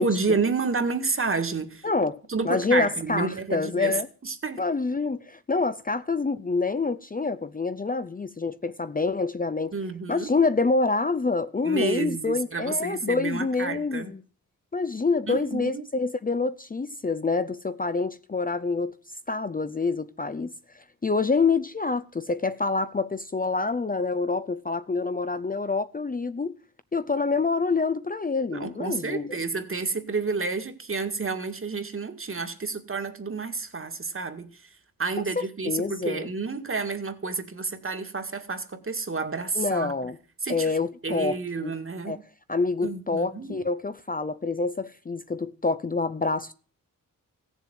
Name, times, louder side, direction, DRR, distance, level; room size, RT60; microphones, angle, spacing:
voice 1, 0.0-1.9 2.3-4.6 9.7-10.3 11.6-14.1 15.3-15.8 28.5-34.5 35.0-39.9 40.4-40.8 41.0-42.2 42.8-43.6, right 4 dB, 40° right, 2.0 m, -30 dB
voice 2, 1.8-4.1 4.6-9.7 10.1-14.2 14.7-18.9 19.3-26.5 26.9-29.4 35.2-36.3 39.6-40.2 40.5-41.7 42.1-42.2 42.5-46.5, left 4 dB, 25° left, 0.6 m, -27 dB
16.0 x 7.2 x 9.3 m
wide cardioid pair, 105°, 34 cm